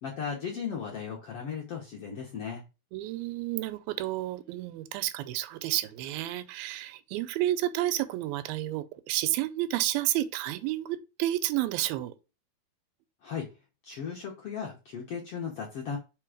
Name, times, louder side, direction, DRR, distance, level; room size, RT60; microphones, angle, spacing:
voice 1, 0.0-2.6 13.2-13.5 13.8-16.0, left 6 dB, 70° left, 1.4 m, -36 dB
voice 2, 2.9-12.1, right 14 dB, 90° right, 2.4 m, -31 dB
5.3 x 3.8 x 4.9 m
omnidirectional pair, 4.1 m